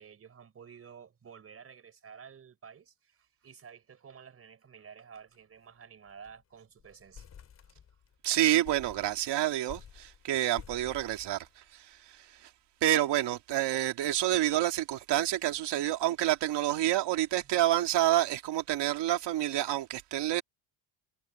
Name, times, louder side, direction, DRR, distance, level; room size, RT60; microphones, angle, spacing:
voice 1, 0.0-7.3 7.6-8.0 17.4-17.6, right 7 dB, 30° right, 5.2 m, -52 dB
sound 1, 5.1-5.4 5.7-5.8 6.1-6.4 6.8-8.2 8.6-11.9, left 8 dB, 35° left, 3.1 m, -51 dB
voice 2, 8.2-11.4 11.7-12.5 12.8-20.4, right 13 dB, 60° right, 2.2 m, -28 dB
cardioid pair, 170°, 47 cm